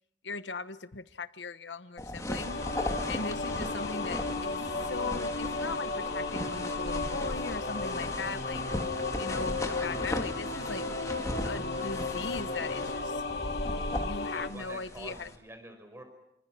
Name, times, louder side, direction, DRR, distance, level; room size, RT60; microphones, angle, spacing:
voice 1, 0.2-2.6 3.1-8.6 9.2-10.9 11.4-13.2 13.9-15.3, left 4 dB, 85° left, 1.1 m, -39 dB
sound 1, 2.0-15.4, left 1 dB, 20° left, 2.4 m, -37 dB
sound 2, 2.3-14.5, left 3 dB, 60° left, 2.4 m, -34 dB
voice 2, 14.2-16.0, right 1 dB, 15° right, 5.5 m, -48 dB
29.5 x 26.0 x 6.2 m
head